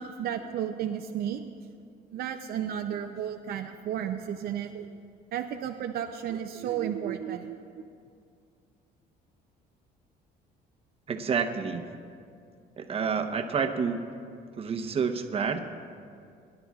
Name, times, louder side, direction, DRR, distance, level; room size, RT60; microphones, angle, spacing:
voice 1, 0.0-1.5 2.1-4.9 5.3-7.6, right 9 dB, 65° right, 5 dB, 0.6 m, -33 dB
voice 2, 11.1-11.8 12.8-14.1 14.6-15.6, right 6 dB, 35° right, 5 dB, 0.9 m, -29 dB
22.0 x 11.0 x 2.4 m, 2.3 s
cardioid pair, 110°, 17 cm